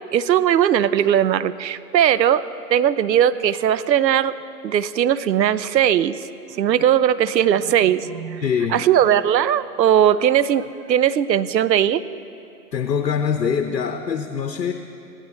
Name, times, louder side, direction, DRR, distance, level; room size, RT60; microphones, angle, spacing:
voice 1, 0.1-2.4 2.7-4.3 4.6-6.1 6.5-8.4 8.7-12.0, right 10 dB, 85° right, 16 dB, 0.6 m, -18 dB
voice 2, 8.4-8.9 12.7-14.7, left 7 dB, 90° left, 6 dB, 0.9 m, -23 dB
16.0 x 12.0 x 4.1 m, 2.6 s
hypercardioid pair, 135°, 49 cm